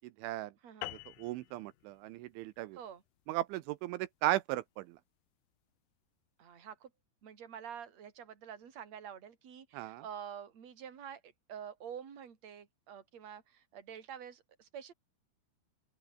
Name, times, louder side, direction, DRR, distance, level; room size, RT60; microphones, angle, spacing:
voice 1, 0.0-0.5 0.9-2.8 3.3-5.0 9.7-10.0, right 16 dB, 80° right, 2.9 m, -36 dB
sound 1, 0.8-5.6, left 18 dB, 80° left, 3.1 m, -49 dB
voice 2, 6.4-6.9 7.2-14.9, right 8 dB, 35° right, 3.9 m, -48 dB
open air
omnidirectional pair, 6.0 m